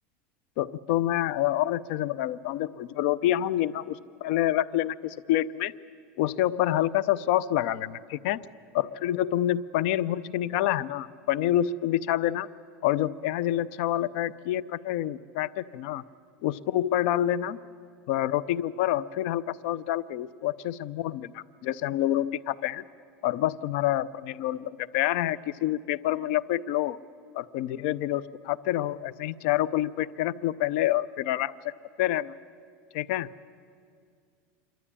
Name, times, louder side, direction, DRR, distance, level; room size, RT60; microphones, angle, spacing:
voice 1, 0.6-5.7 6.2-8.4 8.7-12.5 12.8-16.0 16.4-17.6 18.1-22.8 23.2-27.0 27.3-31.5 32.0-32.3 32.9-33.3, left 13 dB, 60° left, 17 dB, 0.6 m, -27 dB
27.0 x 12.5 x 9.8 m, 2.2 s
supercardioid pair, 165°, 7 cm